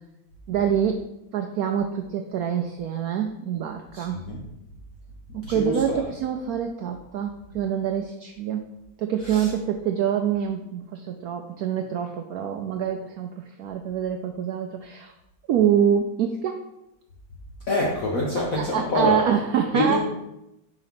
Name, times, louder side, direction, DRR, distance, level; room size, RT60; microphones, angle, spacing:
voice 1, 0.5-1.0 1.3-4.2 5.3-8.7 9.0-15.1 15.5-16.6 18.5-20.0, right 8 dB, 80° right, 4 dB, 0.8 m, -26 dB
voice 2, 3.9-4.4 5.4-6.1 9.2-9.5 17.7-19.2 19.7-20.0, left 2 dB, 50° left, -3 dB, 1.3 m, -26 dB
5.2 x 4.9 x 5.7 m, 0.89 s
omnidirectional pair, 2.1 m